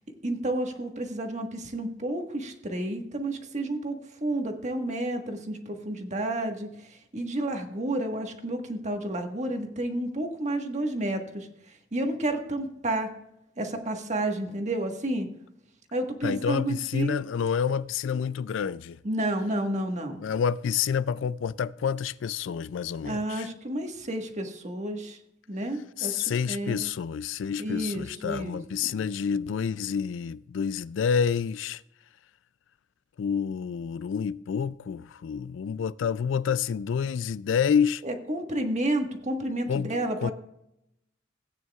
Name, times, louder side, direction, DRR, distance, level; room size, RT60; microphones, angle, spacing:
voice 1, 0.2-11.5 11.9-13.1 13.6-15.3 15.9-17.2 19.0-20.2 23.0-25.2 25.5-26.8 27.6-28.9 38.0-40.3, right 1 dB, 40° right, 1.5 m, -31 dB
voice 2, 16.2-19.0 20.2-23.5 26.0-31.8 33.2-38.0 39.7-40.3, left 7 dB, 70° left, 0.4 m, -28 dB
17.0 x 9.2 x 2.4 m
head